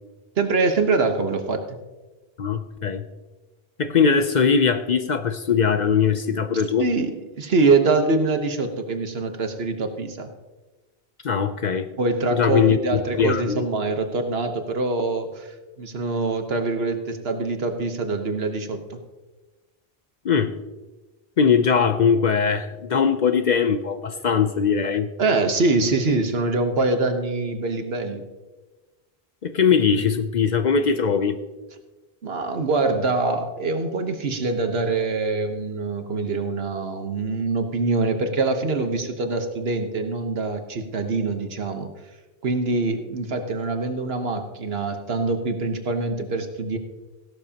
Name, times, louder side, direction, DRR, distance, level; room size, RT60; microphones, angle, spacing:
voice 1, 0.4-1.8 6.8-7.1 7.4-10.3 12.0-19.0 25.2-28.2 32.2-41.9 42.4-46.8, right 3 dB, 70° right, 6 dB, 1.4 m, -24 dB
voice 2, 2.4-3.0 3.8-6.9 11.2-11.9 12.3-13.6 20.2-20.5 21.4-25.1 29.4-31.4, left 6 dB, 50° left, 9 dB, 0.7 m, -21 dB
15.5 x 12.0 x 2.9 m, 1.2 s
omnidirectional pair, 1.1 m